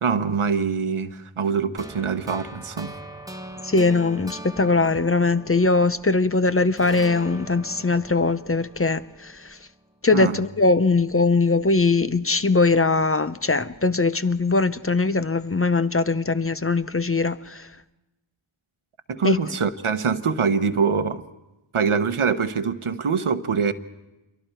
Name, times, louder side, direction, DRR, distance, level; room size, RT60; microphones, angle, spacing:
voice 1, 0.0-2.9 10.1-10.4 19.1-21.2 21.7-23.7, right 5 dB, 80° right, 1.0 m, -24 dB
sound 1, 1.8-6.3 6.8-9.9, right 1 dB, 5° right, 1.3 m, -41 dB
voice 2, 3.6-9.6 10.0-17.7 19.2-19.4, left 3 dB, 25° left, 0.7 m, -21 dB
27.5 x 23.0 x 4.5 m
wide cardioid pair, 55°, 49 cm